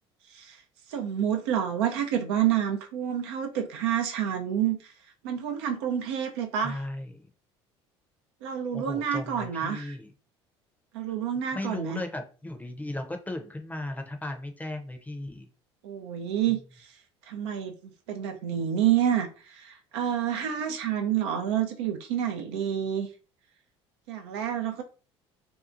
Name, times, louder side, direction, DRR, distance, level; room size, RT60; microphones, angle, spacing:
voice 1, 0.9-4.9 5.2-6.8 8.4-9.9 10.9-12.0 15.8-16.6 17.3-23.1 24.1-24.8, right 9 dB, 80° right, 0.5 m, -28 dB
voice 2, 6.6-7.3 8.7-10.1 11.5-15.5, left 1 dB, 10° left, 0.6 m, -36 dB
2.7 x 2.3 x 2.5 m
hypercardioid pair, 70°, 14 cm